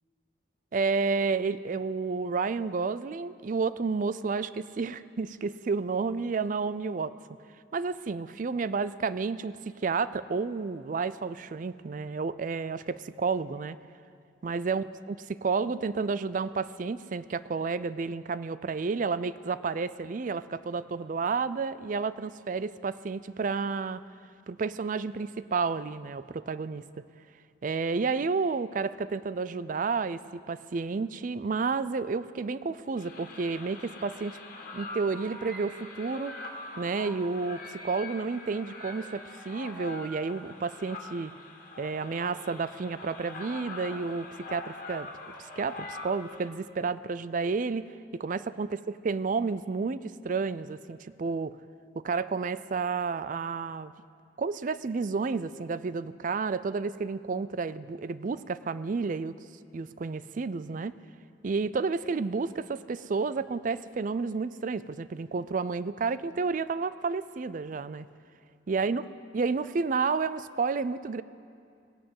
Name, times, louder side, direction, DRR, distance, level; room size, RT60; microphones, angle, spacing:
voice 1, 0.7-7.1 7.7-13.8 14.4-24.0 24.5-26.8 27.6-34.4 34.7-36.3 36.8-41.3 41.8-45.1 45.4-51.6 52.0-53.9 54.4-59.3 59.7-60.9 61.4-68.1 68.7-69.0 69.3-71.2, right 4 dB, 45° right, 15 dB, 0.4 m, -31 dB
sound 1, 33.0-46.5, left 2 dB, 50° left, 2.1 m, -43 dB
17.5 x 10.5 x 7.8 m, 2.4 s
head